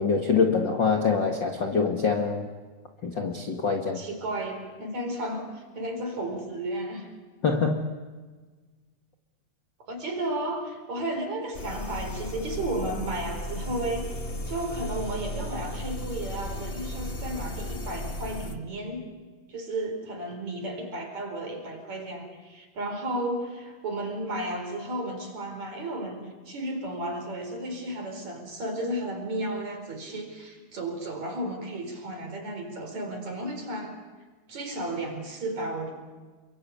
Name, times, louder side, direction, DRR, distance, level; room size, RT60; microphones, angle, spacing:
voice 1, 0.0-2.5 3.0-4.0 7.4-7.8, left 5 dB, 40° left, 3 dB, 1.8 m, -24 dB
voice 2, 3.9-7.1 9.9-19.1 19.5-34.0 34.5-35.9, right 1 dB, 45° right, 4 dB, 5.6 m, -33 dB
sound 1, 11.5-18.6, left 1 dB, 65° left, 0.5 m, -35 dB
29.0 x 24.0 x 8.5 m, 1.4 s
omnidirectional pair, 4.5 m